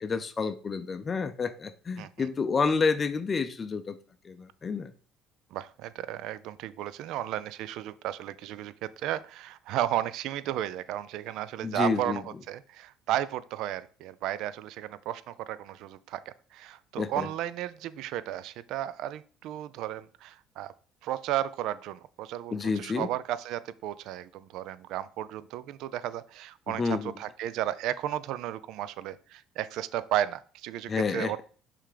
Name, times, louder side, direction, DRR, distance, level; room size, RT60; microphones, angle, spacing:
voice 1, 0.0-4.0 4.2-4.9 11.6-12.2 17.0-17.3 22.5-23.1 26.7-27.1 30.9-31.4, left 4 dB, 30° left, 0.5 m, -29 dB
voice 2, 5.5-20.7 21.0-31.4, right 12 dB, 70° right, 0.4 m, -34 dB
5.6 x 3.4 x 5.0 m
cardioid pair, 115°, 0 cm